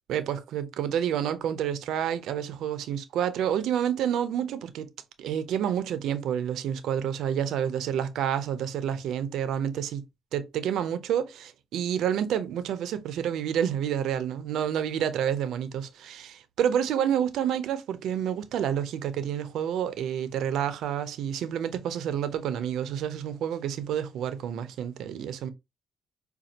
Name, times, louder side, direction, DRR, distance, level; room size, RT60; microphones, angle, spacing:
voice 1, 0.1-4.9 5.2-10.0 10.3-25.5, right 9 dB, 80° right, 0.5 m, -29 dB
5.1 x 2.3 x 2.8 m
cardioid pair, 90°, 0 cm